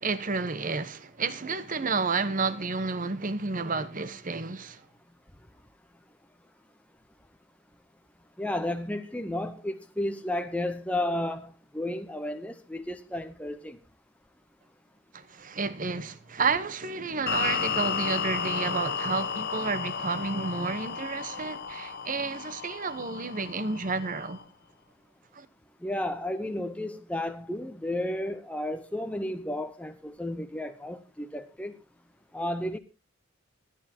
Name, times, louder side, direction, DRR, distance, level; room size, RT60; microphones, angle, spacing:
voice 1, 0.0-4.8 15.1-24.4 25.3-25.5, right 4 dB, 40° right, 1.0 m, -31 dB
voice 2, 8.4-13.8 25.8-31.8 32.3-32.8, left 1 dB, 5° left, 0.7 m, -32 dB
sound 1, 17.3-24.4, left 6 dB, 50° left, 1.1 m, -33 dB
25.0 x 9.4 x 2.9 m
head